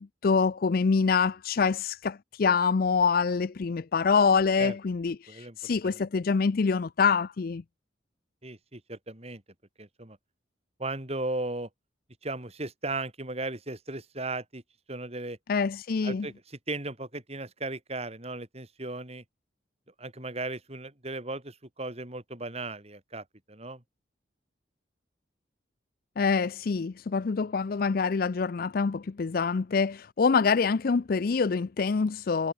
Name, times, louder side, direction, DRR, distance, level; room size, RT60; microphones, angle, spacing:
voice 1, 0.0-7.6 15.5-16.3 26.2-32.5, left 5 dB, 50° left, 0.4 m, -25 dB
voice 2, 5.3-6.0 8.4-9.4 9.8-10.2 10.8-11.7 12.2-14.6 14.9-15.4 16.0-19.2 20.0-23.8, right 2 dB, 35° right, 3.7 m, -36 dB
head